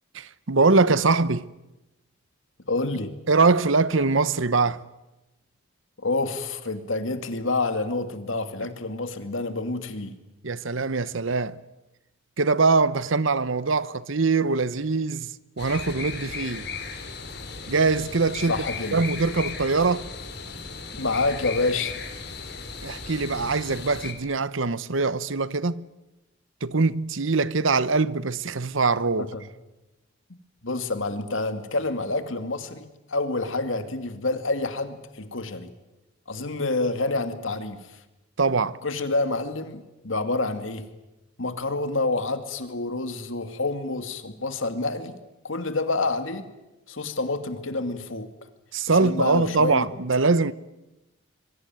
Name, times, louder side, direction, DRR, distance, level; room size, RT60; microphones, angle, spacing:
voice 1, 0.1-1.5 3.3-4.8 10.4-11.6 12.4-16.7 17.7-18.6 18.9-20.1 22.8-25.9 26.6-29.3 38.4-38.8 48.7-50.5, right 4 dB, 70° right, 0.9 m, -23 dB
voice 2, 2.7-3.1 6.0-10.2 18.5-19.0 20.9-22.0 29.2-29.4 30.6-35.7 36.3-38.0 38.8-40.9 41.4-45.2 45.4-46.4 46.9-48.3 48.9-49.9, left 3 dB, 70° left, 2.6 m, -28 dB
sound 1, 15.6-24.1, left 4 dB, 50° left, 4.0 m, -36 dB
26.5 x 23.5 x 9.3 m
head